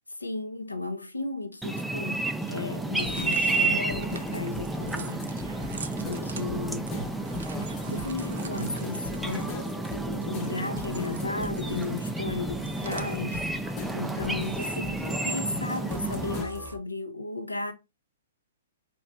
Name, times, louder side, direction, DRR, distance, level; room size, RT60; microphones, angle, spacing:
voice 1, 0.2-5.3 6.0-7.0 7.8-9.6 10.0-17.7, left 3 dB, 90° left, 0.6 m, -35 dB
sound 1, 1.6-16.4, right 2 dB, 5° right, 0.3 m, -31 dB
sound 2, 2.7-16.7, right 5 dB, 65° right, 0.5 m, -46 dB
sound 3, 3.1-16.8, left 3 dB, 25° left, 0.8 m, -41 dB
4.9 x 2.3 x 2.6 m
figure-of-eight pair, 115°, 0 cm